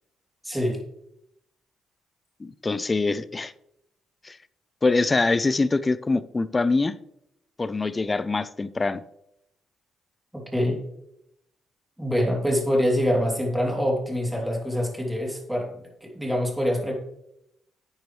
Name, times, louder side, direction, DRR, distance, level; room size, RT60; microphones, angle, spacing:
voice 1, 0.4-0.8 10.3-10.8 12.0-16.9, equal, 5° right, -1 dB, 3.1 m, -25 dB
voice 2, 2.4-3.5 4.2-4.4 4.8-6.9 7.6-9.0, left 3 dB, 25° left, 16 dB, 0.5 m, -24 dB
10.5 x 9.2 x 3.3 m, 0.80 s
cardioid pair, 90°, 0 cm